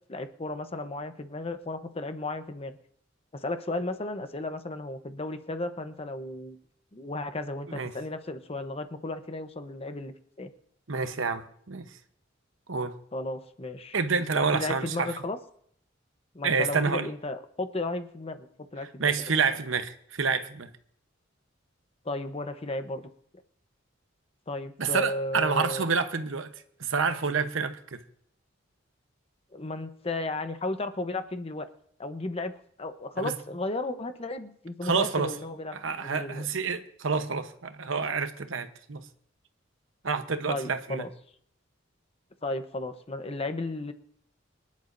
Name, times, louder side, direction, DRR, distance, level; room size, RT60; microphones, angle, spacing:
voice 1, 0.1-2.8 3.3-6.6 6.9-10.1 10.4-10.5 13.1-14.0 14.3-15.4 16.3-18.5 18.7-19.1 22.0-23.0 24.5-25.9 29.5-31.7 32.0-32.5 32.8-36.5 40.5-41.1 42.4-43.9, left 2 dB, 30° left, 0.9 m, -34 dB
voice 2, 10.9-11.9 12.7-12.9 13.9-15.1 16.4-17.1 19.0-20.7 24.8-26.5 26.8-28.0 33.2-33.3 34.8-35.3 35.7-39.0 40.0-41.0, right 5 dB, 85° right, 1.0 m, -28 dB
24.5 x 10.5 x 2.6 m
head